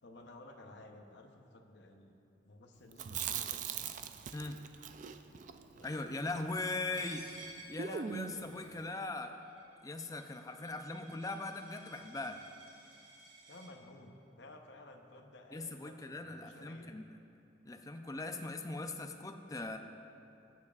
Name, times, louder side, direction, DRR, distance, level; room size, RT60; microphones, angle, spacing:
voice 1, 0.0-2.2 2.4-3.6 5.8-5.9 13.5-17.0, left 2 dB, 65° left, 3 dB, 0.8 m, -55 dB
Chewing mastication, 2.9-7.1 7.3-7.4 7.8-8.5, right 7 dB, 45° right, 0.4 m, -41 dB
voice 2, 5.8-7.3 7.7-9.3 9.8-12.4 15.5-17.2 17.6-19.8, left 2 dB, 20° left, 6 dB, 0.4 m, -40 dB
Coin (dropping), 6.9-13.7, right 2 dB, 75° right, 2.3 m, -55 dB
18.5 x 7.1 x 2.4 m, 2.8 s
head